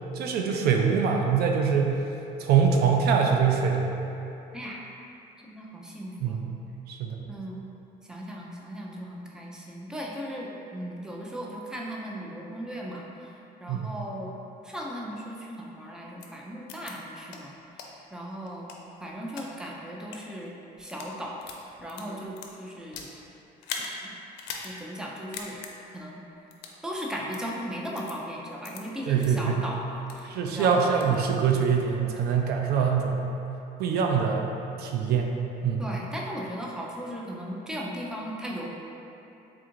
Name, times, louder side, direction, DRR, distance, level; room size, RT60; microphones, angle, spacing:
voice 1, 0.1-2.0 2.4-3.8 6.2-6.4 6.9-7.2 13.7-13.9 29.1-29.6 30.3-33.2 33.8-34.5 34.8-35.4 35.6-35.8, right 6 dB, 70° right, 1 dB, 0.4 m, -24 dB
voice 2, 4.5-4.8 5.5-6.4 7.3-7.7 8.1-13.3 13.6-14.4 14.6-17.5 18.1-18.7 19.0-21.4 21.8-23.1 24.0-24.1 24.6-25.6 25.9-26.2 26.8-30.7 35.8-38.7, equal, 5° right, -2 dB, 0.5 m, -37 dB
sound 1, 16.2-16.3 16.7-16.9 17.3-17.4 17.8-17.9 18.4-19.5 20.0-20.2 20.8-21.1 21.4-23.1 23.6-23.9 24.4-24.7 25.0-25.1 25.3-25.7 26.5-26.8 27.3-27.4 28.0-28.1 28.6-28.8 29.2-29.3 29.7-30.2 30.6-31.2, left 6 dB, 85° left, 0.5 m, -39 dB
3.6 x 2.4 x 4.4 m, 2.9 s
cardioid pair, 110°, 17 cm